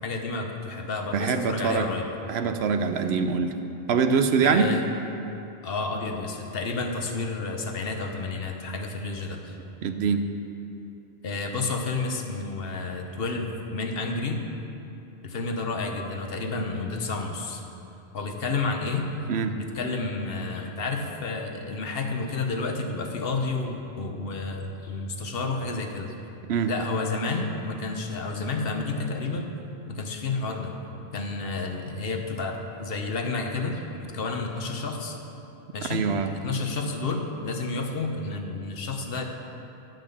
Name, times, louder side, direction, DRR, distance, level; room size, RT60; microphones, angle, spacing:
voice 1, 0.0-2.1 4.4-4.9 5.6-9.6 11.2-14.4 15.2-17.6 18.1-19.1 19.5-26.1 26.7-29.5 29.9-30.7 31.1-35.2 35.7-39.2, left 3 dB, 65° left, 3 dB, 1.1 m, -30 dB
voice 2, 1.1-1.9 2.3-3.5 3.9-4.7 9.8-10.3 19.3-19.6 26.5-26.7 35.9-36.3, right 6 dB, 80° right, 8 dB, 0.9 m, -24 dB
10.5 x 5.8 x 6.7 m, 2.9 s
omnidirectional pair, 1.1 m